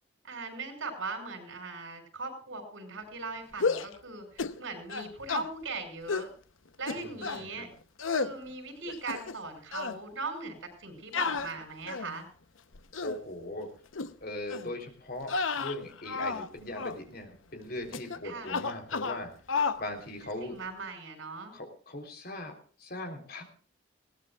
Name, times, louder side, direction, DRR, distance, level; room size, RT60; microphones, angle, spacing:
voice 1, 0.2-6.3 6.8-7.7 8.1-12.3 18.2-18.6 20.4-21.5, right 3 dB, 90° right, 6 dB, 5.6 m, -39 dB
sound 1, 3.5-4.0 4.4-4.6 4.9-5.5 6.1-6.3 6.9-7.4 8.0-8.3 8.9-9.5 9.7-10.0 11.1-12.2 12.7-13.2 13.9-14.1 14.5-14.7 15.2-16.5 16.8-17.0 17.9-18.2 18.5-19.2 19.5-19.8, left 4 dB, 85° left, 0.8 m, -32 dB
voice 2, 7.0-7.7 13.0-13.7 14.2-19.3 19.8-20.6 21.5-23.4, left 1 dB, 50° left, 4 dB, 3.6 m, -40 dB
20.5 x 17.5 x 2.4 m, 0.41 s
head